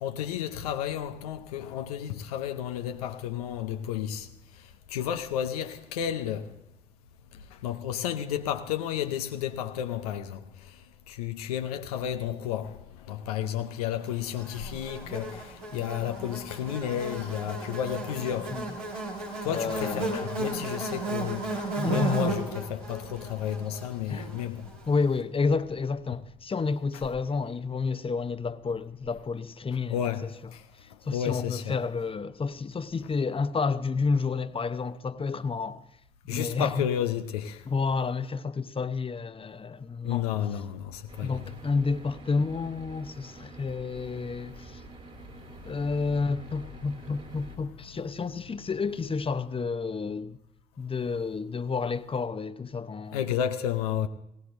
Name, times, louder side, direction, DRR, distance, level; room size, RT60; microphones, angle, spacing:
voice 1, 0.0-4.3 4.9-6.4 7.6-10.4 11.1-12.8 13.1-18.6 19.4-21.4 21.8-24.6 29.9-30.3 31.1-31.8 36.3-37.6 40.0-41.4 53.1-54.1, left 10 dB, 85° left, 0.6 m, -31 dB
Buzz, 14.4-24.8, right 3 dB, 90° right, 1.9 m, -34 dB
voice 2, 15.7-16.0 18.5-18.7 19.5-20.3 21.7-22.3 24.1-24.3 24.9-30.0 30.2-30.3 30.8-35.8 36.3-36.9 37.7-40.3 41.2-44.8 45.6-50.4 50.8-53.2, left 4 dB, 30° left, 0.8 m, -30 dB
sound 1, 41.1-47.6, right 3 dB, 45° right, 3.6 m, -47 dB
20.0 x 17.0 x 2.6 m
hypercardioid pair, 40°, 19 cm